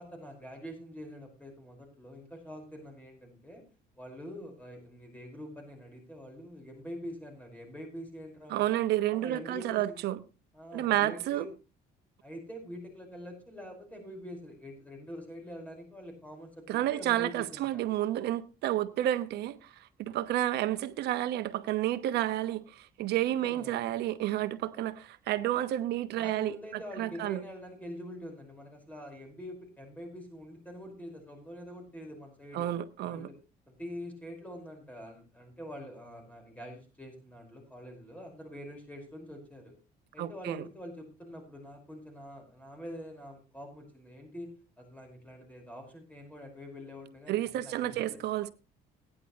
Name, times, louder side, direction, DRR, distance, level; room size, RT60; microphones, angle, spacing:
voice 1, 0.0-3.6 4.0-8.8 9.1-9.9 10.5-11.5 12.2-17.8 23.4-23.8 26.2-32.7 33.0-33.4 33.7-39.7 40.1-48.2, equal, 10° left, 5.2 m, -45 dB
voice 2, 8.5-10.2 10.7-11.5 16.7-19.7 20.0-27.4 32.5-33.3 40.2-40.7 47.3-48.5, right 13 dB, 75° right, 1.0 m, -30 dB
17.0 x 10.0 x 3.2 m
cardioid pair, 110°, 17 cm